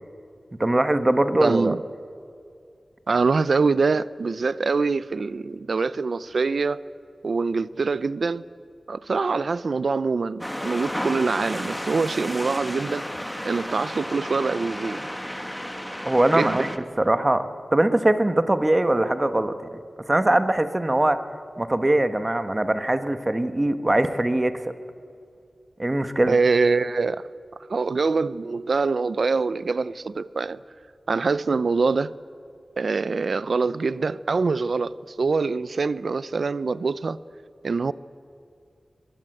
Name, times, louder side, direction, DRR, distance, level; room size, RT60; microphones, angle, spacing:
voice 1, 0.6-1.7 16.0-16.7 17.0-19.8 20.1-21.2 21.6-24.7 25.8-26.4, right 1 dB, 25° right, 1.2 m, -22 dB
voice 2, 1.4-1.8 3.1-6.8 7.2-8.4 8.9-13.1 13.4-15.1 16.3-16.7 26.2-27.3 27.7-30.6 31.1-32.1 32.8-37.2 37.6-37.9, right 4 dB, 70° right, 0.5 m, -24 dB
sound 1, 10.4-16.8, equal, 5° left, 1.4 m, -32 dB
22.5 x 21.0 x 7.9 m
wide cardioid pair, 105°, 0 cm